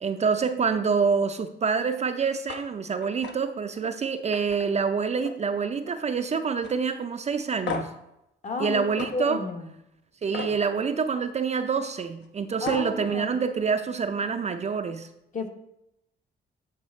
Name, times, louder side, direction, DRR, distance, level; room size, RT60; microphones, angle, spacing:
voice 1, 0.0-7.9 8.6-9.4 10.2-15.1, right 5 dB, 35° right, 8 dB, 0.5 m, -26 dB
sound 1, 2.5-2.6 3.0-3.3 3.7-3.9 4.3-5.5 5.8-6.2 6.6-6.7 7.7-8.0 9.0-9.1 10.3-10.6 12.2-12.3 12.6-12.9, left 5 dB, 65° left, 0.9 m, -36 dB
voice 2, 8.4-8.9 9.1-9.7 12.6-13.4 15.3-15.5, left 4 dB, 40° left, 4 dB, 1.0 m, -31 dB
8.2 x 3.3 x 4.3 m, 0.85 s
cardioid pair, 90°, 20 cm